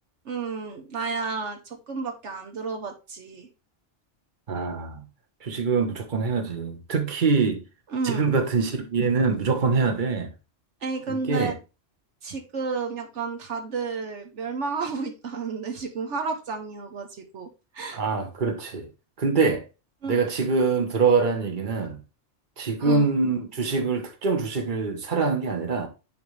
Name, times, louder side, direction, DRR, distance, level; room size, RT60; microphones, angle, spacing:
voice 1, 0.2-3.5 7.9-8.3 10.8-11.6 12.2-18.0 20.0-20.2 22.8-23.1, right 4 dB, 75° right, 1.3 m, -32 dB
voice 2, 4.5-5.0 5.4-7.6 8.0-10.3 11.1-11.5 17.9-18.9 19.2-19.6 20.1-22.0 22.6-25.9, right 4 dB, 45° right, 1.4 m, -24 dB
10.5 x 4.1 x 3.2 m
omnidirectional pair, 1.2 m